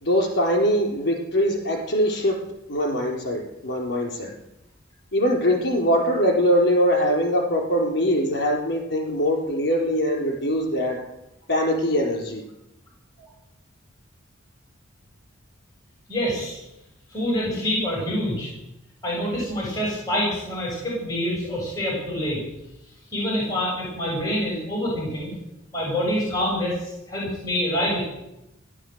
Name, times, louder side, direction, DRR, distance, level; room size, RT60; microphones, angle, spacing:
voice 1, 0.0-2.4 2.7-4.3 5.1-11.0 11.5-12.4, equal, 60° left, 0 dB, 4.0 m, -22 dB
voice 2, 16.1-16.6 17.1-18.5 19.0-22.4 23.1-25.3 25.7-28.0, equal, 20° left, -4 dB, 6.9 m, -26 dB
16.0 x 11.0 x 8.0 m, 0.87 s
head